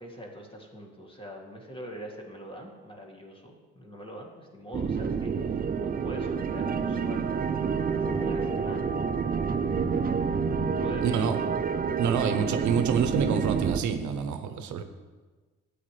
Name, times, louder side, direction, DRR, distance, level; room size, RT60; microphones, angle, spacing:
voice 1, 0.0-7.4 7.9-8.9 10.7-11.3, equal, 15° left, 0 dB, 1.9 m, -43 dB
sound 1, 4.7-13.8, right 6 dB, 30° right, 0.5 m, -28 dB
voice 2, 11.0-11.4 12.0-14.8, right 7 dB, 75° right, 8 dB, 0.8 m, -27 dB
11.5 x 8.5 x 3.3 m, 1.3 s
cardioid pair, 90°, 30 cm